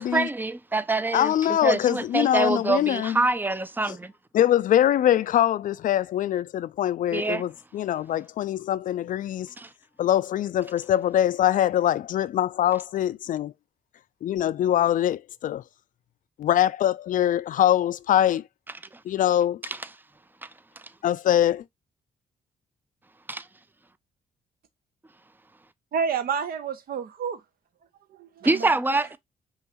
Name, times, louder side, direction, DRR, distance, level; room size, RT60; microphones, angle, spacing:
voice 1, 0.0-4.1 7.1-7.4 9.6-9.7 19.6-19.8 20.4-20.5 23.3-23.4 28.4-29.2, right 3 dB, 10° right, 0.5 m, -25 dB
voice 2, 1.1-3.2 3.9-4.0 4.3-9.5 10.0-13.5 14.2-15.6 16.4-18.4 19.1-19.6 21.0-21.6, left 11 dB, 50° left, 0.4 m, -23 dB
voice 3, 25.9-27.4 28.1-29.0, right 6 dB, 55° right, 0.8 m, -30 dB
5.5 x 3.0 x 2.8 m
hypercardioid pair, 40°, 18 cm